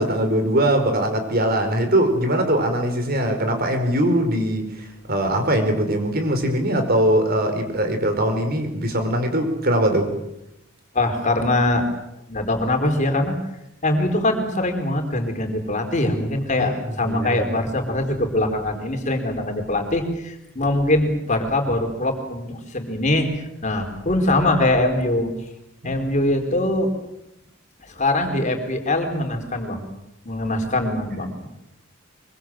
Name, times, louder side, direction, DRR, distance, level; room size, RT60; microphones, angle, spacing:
voice 1, 0.0-10.2 16.6-17.5 25.8-26.1, right 1 dB, 45° right, 6 dB, 4.9 m, -21 dB
voice 2, 10.9-11.9 12.3-13.4 13.8-25.3 25.8-26.9 27.8-29.9 30.2-31.5, left 1 dB, 35° left, 4 dB, 4.6 m, -22 dB
25.0 x 24.5 x 7.8 m, 0.84 s
head